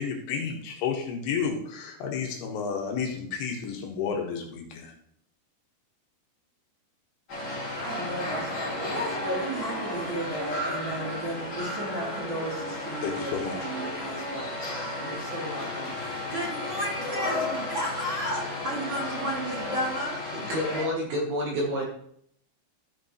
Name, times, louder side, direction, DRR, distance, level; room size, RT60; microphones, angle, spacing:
voice 1, 0.0-4.9 13.0-13.6, left 6 dB, 80° left, 1 dB, 3.5 m, -31 dB
sound 1, 7.3-20.9, left 1 dB, 30° left, 2.4 m, -33 dB
voice 2, 7.7-14.5 15.0-20.2, equal, 30° right, -5 dB, 3.2 m, -34 dB
voice 3, 20.3-21.8, equal, 65° right, -2 dB, 3.0 m, -29 dB
14.0 x 5.2 x 3.1 m, 0.67 s
omnidirectional pair, 5.7 m